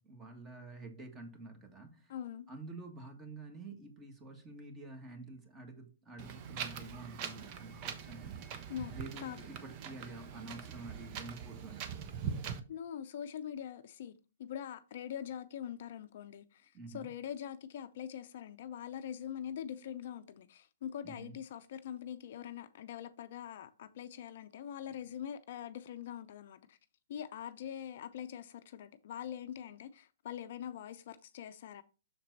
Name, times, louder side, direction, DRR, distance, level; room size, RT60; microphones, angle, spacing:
voice 1, 0.0-2.1 2.5-8.5 8.9-12.1 16.7-17.1 21.0-21.4, right 2 dB, 20° right, 1.7 m, -49 dB
voice 2, 2.1-2.5 8.7-9.4 12.7-14.1 14.4-26.8 27.1-31.8, left 9 dB, 55° left, 0.5 m, -43 dB
Wind, 6.2-12.6, right 7 dB, 40° right, 0.8 m, -43 dB
6.6 x 4.3 x 4.0 m
hypercardioid pair, 125°, 0 cm